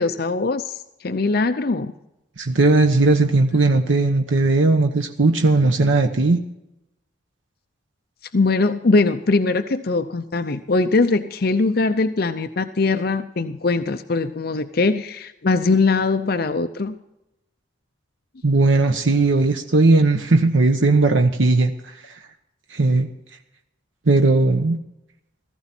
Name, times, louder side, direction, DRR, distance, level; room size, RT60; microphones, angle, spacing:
voice 1, 0.0-1.9 8.3-16.9, left 3 dB, 50° left, 9 dB, 0.6 m, -21 dB
voice 2, 2.4-6.4 18.4-22.2 22.7-23.1 24.1-24.8, right 3 dB, 90° right, 5 dB, 1.0 m, -17 dB
15.5 x 15.0 x 4.4 m, 0.88 s
head